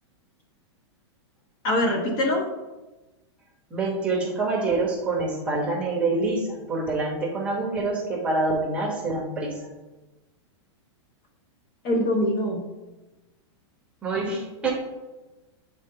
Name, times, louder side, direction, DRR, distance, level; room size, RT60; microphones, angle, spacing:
voice 1, 1.6-2.5 11.8-12.6, left 1 dB, 30° left, 2 dB, 0.8 m, -23 dB
voice 2, 3.7-9.5 14.0-14.7, right 3 dB, 10° right, -2 dB, 0.9 m, -26 dB
8.9 x 3.7 x 3.7 m, 1.1 s
supercardioid pair, 175°, 15 cm